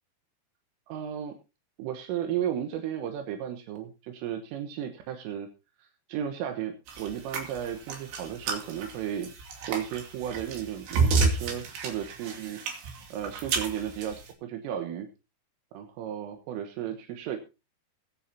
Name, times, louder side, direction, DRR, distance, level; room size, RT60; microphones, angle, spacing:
voice 1, 0.9-1.4 1.8-5.5 5.8-9.3 9.6-12.6 13.1-15.1 15.7-17.4, right 10 dB, 80° right, 5 dB, 3.8 m, -34 dB
sound 1, 6.9-14.3, right 4 dB, 65° right, 4.7 m, -31 dB
22.5 x 9.9 x 2.9 m, 0.30 s
omnidirectional pair, 5.8 m